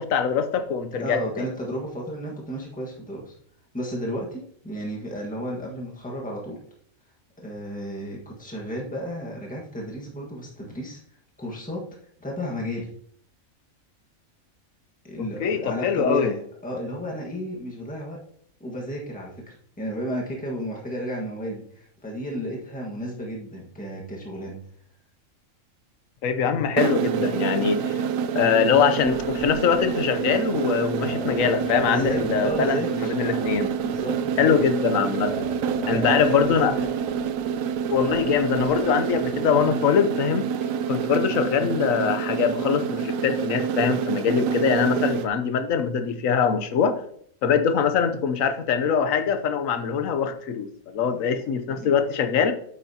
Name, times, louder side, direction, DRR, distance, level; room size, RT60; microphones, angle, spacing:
voice 1, 0.0-1.5 15.2-16.3 26.2-28.0 28.3-33.8 34.4-35.5 35.9-36.7 37.9-40.5 40.9-47.0 47.4-52.5, left 7 dB, 75° left, 9 dB, 1.2 m, -23 dB
voice 2, 0.9-3.3 3.7-6.6 7.4-11.0 11.4-11.8 12.2-12.9 15.1-18.2 18.6-24.6 31.2-31.4 31.7-33.2 33.8-34.6 35.7-36.8 51.1-51.2 51.7-51.9, equal, 5° left, -2 dB, 1.5 m, -33 dB
sound 1, 26.8-45.3, right 7 dB, 80° right, 1.0 m, -27 dB
sound 2, 29.0-39.6, left 2 dB, 40° left, 2.3 m, -41 dB
8.6 x 8.4 x 2.8 m, 0.62 s
omnidirectional pair, 1.4 m